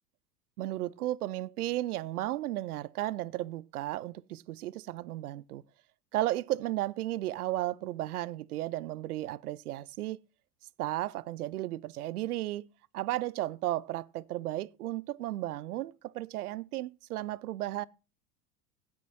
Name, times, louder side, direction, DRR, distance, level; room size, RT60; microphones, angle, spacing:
voice 1, 0.6-5.6 6.1-10.2 10.8-12.7 12.9-17.9, right 15 dB, 70° right, 0.6 m, -34 dB
16.5 x 9.8 x 2.8 m
figure-of-eight pair, 85°, 47 cm